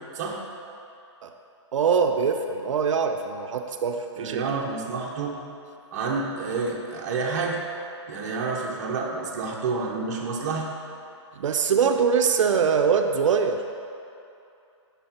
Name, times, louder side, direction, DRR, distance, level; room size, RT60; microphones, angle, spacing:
voice 1, 1.7-4.4 11.4-13.8, right 6 dB, 90° right, 5 dB, 0.5 m, -23 dB
voice 2, 4.2-5.4 5.9-7.6 8.1-10.7, right 4 dB, 35° right, -1 dB, 0.8 m, -29 dB
5.6 x 4.2 x 5.8 m, 2.6 s
hypercardioid pair, 165°, 16 cm